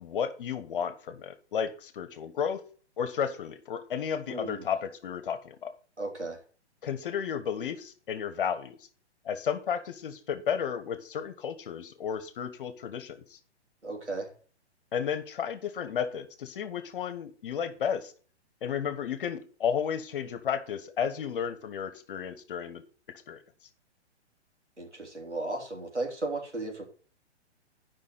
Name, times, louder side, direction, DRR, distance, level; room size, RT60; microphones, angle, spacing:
voice 1, 0.0-2.6 3.0-5.7 6.8-8.8 9.2-13.4 14.9-18.1 18.6-22.8 23.1-23.4, left 7 dB, 50° left, 11 dB, 1.4 m, -33 dB
voice 2, 4.3-4.7 6.0-6.4 13.8-14.3 24.8-26.8, right 2 dB, 90° right, 0 dB, 3.5 m, -35 dB
11.0 x 5.5 x 5.5 m, 0.41 s
figure-of-eight pair, 120°, 34 cm